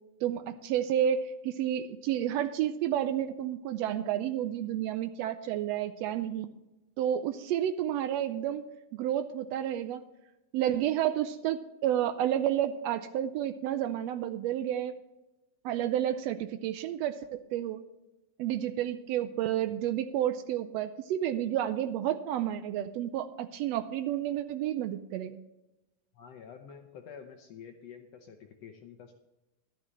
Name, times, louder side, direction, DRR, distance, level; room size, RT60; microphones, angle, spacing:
voice 1, 0.2-6.5 7.0-8.6 8.9-10.0 10.5-14.9 15.6-17.8 18.4-25.4, right 11 dB, 90° right, 9 dB, 1.5 m, -30 dB
voice 2, 26.1-29.1, left 7 dB, 65° left, 4 dB, 1.8 m, -48 dB
13.5 x 11.5 x 3.1 m, 0.97 s
omnidirectional pair, 3.5 m